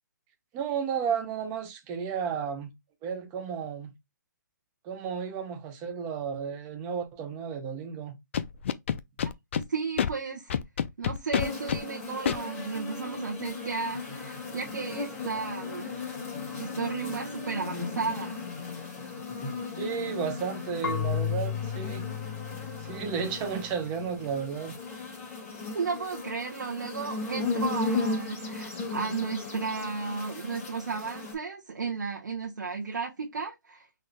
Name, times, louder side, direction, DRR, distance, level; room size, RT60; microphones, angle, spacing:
voice 1, 0.5-2.7 3.0-3.9 4.8-8.1 19.7-22.1 22.8-24.8, right 7 dB, 15° right, 0.6 m, -33 dB
Scratching (performance technique), 8.3-9.6 10.0-10.1 10.5-11.8 12.3-12.4, left 8 dB, 40° left, 0.3 m, -27 dB
voice 2, 9.5-10.5 11.0-16.1 16.5-18.3 25.7-33.9, right 5 dB, 75° right, 1.0 m, -34 dB
sound 1, 11.4-31.3, left 4 dB, 15° left, 1.8 m, -36 dB
Marimba xylophone / Wood, 20.8-23.7, left 8 dB, 60° left, 1.4 m, -33 dB
3.9 x 2.5 x 3.3 m
hypercardioid pair, 160°, 10 cm